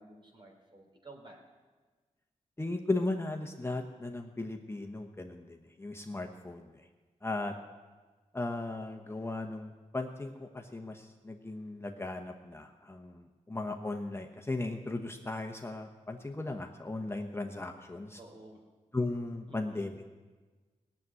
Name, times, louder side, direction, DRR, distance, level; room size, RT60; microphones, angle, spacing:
voice 1, 0.0-1.4 18.2-18.6 19.5-19.9, right 2 dB, 40° right, 1 dB, 3.7 m, -52 dB
voice 2, 2.6-6.9 7.2-7.5 8.3-18.2 18.9-20.0, left 2 dB, 20° left, 2 dB, 1.0 m, -37 dB
18.0 x 7.7 x 9.7 m, 1.3 s
wide cardioid pair, 75°, 13 cm